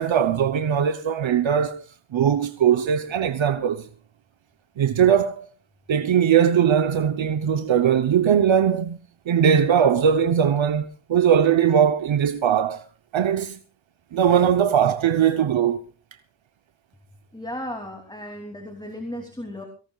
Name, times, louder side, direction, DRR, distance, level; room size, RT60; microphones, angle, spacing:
voice 1, 0.0-1.8 2.1-3.9 4.8-5.5 5.9-9.0 9.3-12.8 13.1-13.6 14.1-15.8, right 8 dB, 85° right, 0.9 m, -20 dB
voice 2, 17.3-19.7, equal, 10° left, 2.9 m, -35 dB
23.5 x 18.0 x 2.4 m
wide cardioid pair, 125°, 45 cm